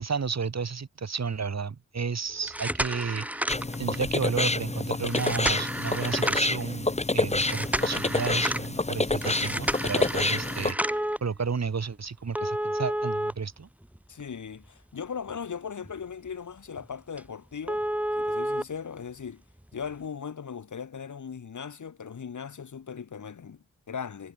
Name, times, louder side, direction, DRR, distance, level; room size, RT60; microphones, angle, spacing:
voice 1, 0.0-3.5 3.8-13.7, right 5 dB, 60° right, 6.4 m, -32 dB
sound 1, 2.4-4.1 5.1-6.6 7.4-8.7 9.2-11.2 12.4-14.2 14.6-14.7 15.3-15.4 15.8-16.0 16.3-16.4 16.8-16.9 17.2-17.3 17.7-18.6 19.7-19.8, right 1 dB, 5° right, 1.6 m, -31 dB
sound 2, 3.5-10.7, left 2 dB, 20° left, 2.8 m, -28 dB
voice 2, 14.1-17.8 18.1-19.4 19.7-24.3, left 6 dB, 80° left, 7.2 m, -38 dB
wide cardioid pair, 90°, 29 cm